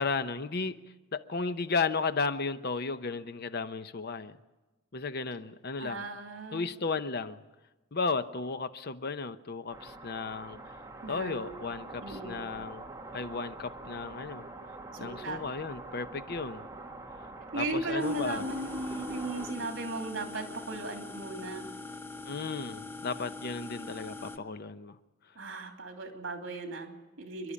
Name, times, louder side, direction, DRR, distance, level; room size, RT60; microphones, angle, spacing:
voice 1, 0.0-4.4 4.9-6.0 6.5-7.4 7.9-10.6 11.1-12.9 13.1-14.5 15.0-16.6 17.6-18.5 22.2-25.0, left 4 dB, 55° left, 0.8 m, -34 dB
voice 2, 5.8-6.7 11.0-11.5 12.0-12.4 15.0-15.4 17.5-21.7 25.3-27.5, right 2 dB, 70° right, 2.9 m, -36 dB
sound 1, 9.7-19.5, right 2 dB, 15° right, 1.5 m, -45 dB
sound 2, 18.0-24.4, left 2 dB, 10° left, 0.8 m, -42 dB
28.0 x 11.5 x 8.4 m
head